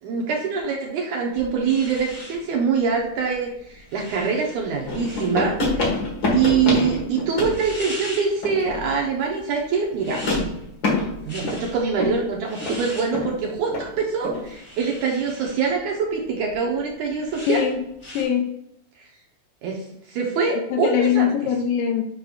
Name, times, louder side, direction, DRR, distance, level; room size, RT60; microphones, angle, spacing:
voice 1, 0.0-5.9 6.3-10.2 11.2-17.6 19.0-19.1 19.6-21.3, right 5 dB, 70° right, -1 dB, 2.0 m, -24 dB
sound 1, 1.3-18.2, left 1 dB, 20° left, 1.3 m, -42 dB
sound 2, 4.9-7.7 8.4-9.1 10.1-12.3 12.6-12.8 13.1-13.4 13.7-13.9 14.2-14.5, left 2 dB, 45° left, 1.6 m, -26 dB
voice 2, 17.5-17.8 18.1-18.5 20.5-22.0, left 9 dB, 80° left, 4 dB, 2.1 m, -22 dB
8.4 x 5.3 x 2.4 m, 0.76 s
omnidirectional pair, 4.2 m